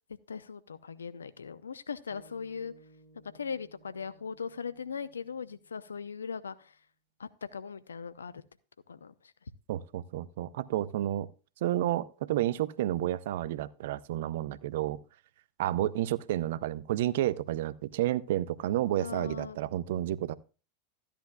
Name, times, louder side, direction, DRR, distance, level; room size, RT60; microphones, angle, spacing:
voice 1, 0.3-2.7 3.3-6.7 7.2-8.4 8.9-9.3 19.0-19.6, left 6 dB, 80° left, 15 dB, 0.7 m, -39 dB
sound 1, 2.1-6.5, right 1 dB, 15° left, 5.0 m, -61 dB
voice 2, 9.7-11.3 11.6-15.0 15.6-20.3, right 13 dB, 65° right, 18 dB, 0.6 m, -31 dB
13.5 x 10.5 x 2.3 m, 0.34 s
figure-of-eight pair, 90°, 0 cm